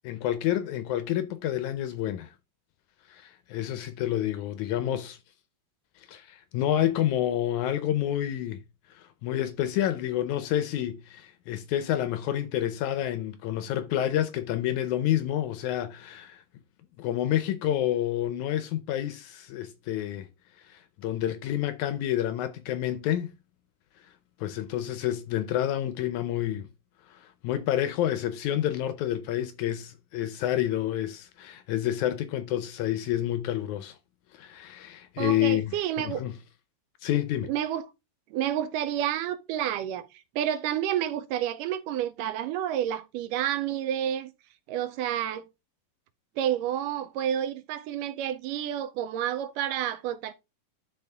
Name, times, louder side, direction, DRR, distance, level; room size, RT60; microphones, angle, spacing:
voice 1, 0.0-2.3 3.1-5.2 6.1-8.6 9.2-16.4 17.0-20.3 20.7-23.3 24.4-26.7 27.1-34.0 34.3-36.3 37.0-37.5, left 12 dB, 80° left, 1.7 m, -29 dB
voice 2, 35.2-36.2 37.4-37.9 38.3-44.3 44.7-45.5 46.4-50.3, right 10 dB, 80° right, 2.1 m, -30 dB
12.0 x 4.2 x 3.4 m
omnidirectional pair, 4.0 m